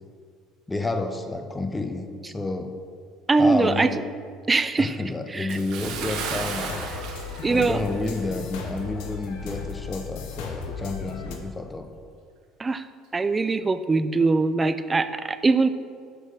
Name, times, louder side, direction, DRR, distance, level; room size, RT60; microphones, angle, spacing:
voice 1, 0.7-2.7 3.4-3.8 4.8-6.8 7.5-11.9, left 2 dB, 20° left, 6 dB, 0.8 m, -30 dB
voice 2, 3.3-4.0 4.5-5.6 7.4-7.8 12.6-12.9 13.1-15.7, right 3 dB, 25° right, 12 dB, 0.4 m, -22 dB
Bathtub (filling or washing) / Splash splatter, 5.5-8.4 8.7-8.9 9.4-9.5, right 5 dB, 65° right, 1.1 m, -35 dB
sound 1, 5.9-11.4, left 6 dB, 70° left, 0.8 m, -36 dB
6.1 x 5.5 x 5.4 m, 2.2 s
hypercardioid pair, 65°, 0 cm